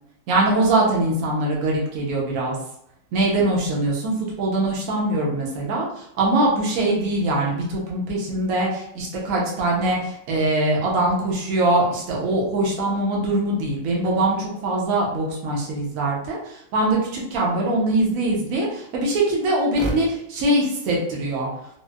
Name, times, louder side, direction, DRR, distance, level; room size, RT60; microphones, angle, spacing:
voice 1, 0.3-2.6 3.1-21.5, right 2 dB, 75° right, -3 dB, 1.2 m, -22 dB
4.2 x 2.0 x 2.3 m, 0.75 s
omnidirectional pair, 1.6 m